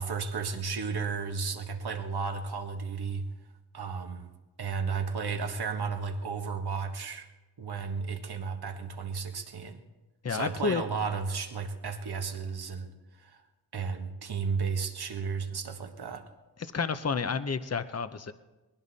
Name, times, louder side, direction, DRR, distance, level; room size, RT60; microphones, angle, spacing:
voice 1, 0.0-3.3 3.7-4.3 4.6-7.3 7.6-9.8 10.3-13.4 13.7-16.2, right 5 dB, 70° right, 6 dB, 1.5 m, -33 dB
voice 2, 10.2-10.8 16.6-18.3, left 5 dB, 40° left, 12 dB, 0.9 m, -30 dB
20.0 x 16.0 x 4.2 m, 1.2 s
cardioid pair, 45°, 40 cm